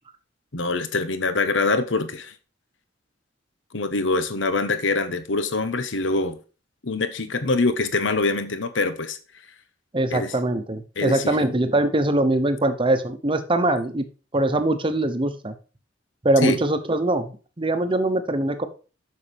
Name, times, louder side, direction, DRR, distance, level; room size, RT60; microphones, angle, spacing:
voice 1, 0.5-2.3 3.7-6.4 6.8-9.2 10.1-10.3 11.0-11.4 16.4-16.6, left 3 dB, 75° left, 10 dB, 1.1 m, -24 dB
voice 2, 9.9-14.0 14.3-15.5 16.2-18.7, right 1 dB, 25° right, 9 dB, 1.0 m, -22 dB
7.1 x 6.6 x 5.1 m, 0.35 s
head